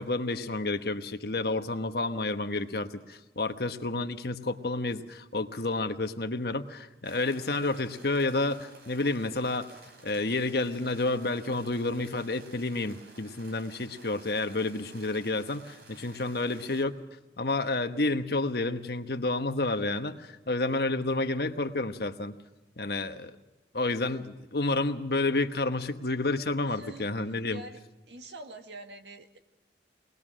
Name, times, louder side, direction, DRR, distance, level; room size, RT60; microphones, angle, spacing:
voice 1, 0.0-9.7 10.0-16.9 17.4-22.3 22.8-23.4 23.7-27.6, left 2 dB, 60° left, 8 dB, 1.1 m, -30 dB
sound 1, 7.0-16.8, right 2 dB, 65° right, 3.5 m, -53 dB
voice 2, 26.6-27.8 28.1-29.4, right 2 dB, 85° right, 5 dB, 1.8 m, -46 dB
23.0 x 19.5 x 6.3 m, 1.1 s
head